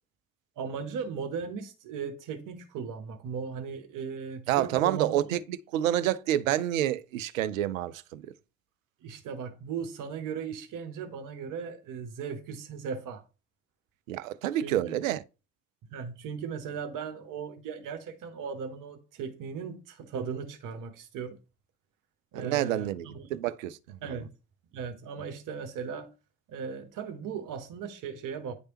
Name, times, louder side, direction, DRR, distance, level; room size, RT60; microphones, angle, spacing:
voice 1, 0.6-5.2 9.0-13.2 14.6-14.9 15.9-21.4 22.3-23.3 24.0-24.3 24.7-26.1 26.5-28.5, right 6 dB, 50° right, 1.0 m, -37 dB
voice 2, 4.5-8.3 14.1-15.2 22.3-24.2, right 12 dB, 75° right, 0.5 m, -29 dB
9.8 x 3.3 x 2.9 m
figure-of-eight pair, 55°, 40 cm